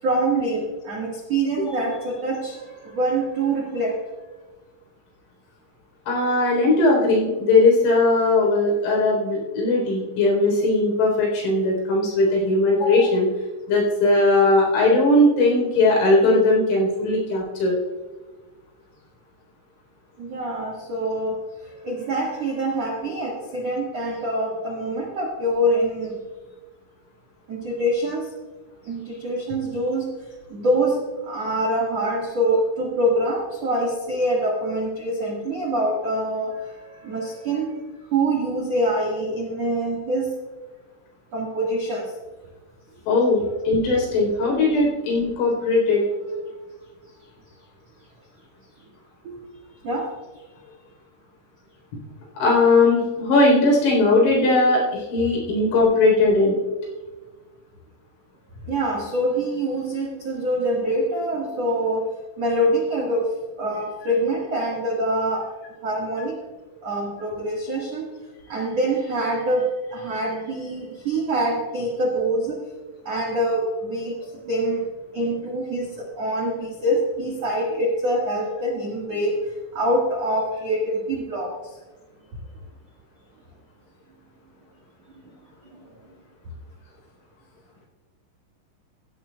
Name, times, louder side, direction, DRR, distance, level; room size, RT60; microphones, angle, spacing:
voice 1, 0.0-4.0 20.2-21.4 21.6-26.2 27.5-28.3 28.8-30.1 30.5-37.8 38.1-40.3 41.3-42.1 49.2-49.4 49.8-50.2 58.7-62.0 62.4-63.3 63.6-65.5 65.8-66.4 66.8-68.1 68.5-72.6 73.0-74.9 75.1-81.8 85.1-85.4 85.6-85.9, right 1 dB, 65° right, -3 dB, 1.5 m, -25 dB
voice 2, 6.1-13.3 13.7-17.8 43.1-46.0 52.4-56.6, left 2 dB, 80° left, -2 dB, 6.5 m, -19 dB
17.5 x 13.0 x 2.3 m, 1.3 s
omnidirectional pair, 6.0 m